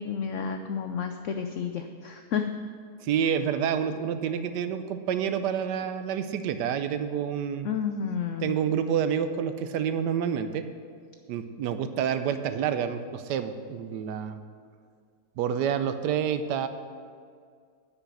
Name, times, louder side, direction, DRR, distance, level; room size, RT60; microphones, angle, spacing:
voice 1, 0.0-2.5 7.6-8.5, left 7 dB, 85° left, 6 dB, 0.6 m, -31 dB
voice 2, 3.0-7.7 8.4-10.6 11.3-14.4 15.4-16.7, right 8 dB, 80° right, 10 dB, 1.2 m, -28 dB
9.9 x 5.9 x 8.0 m, 2.1 s
omnidirectional pair, 1.9 m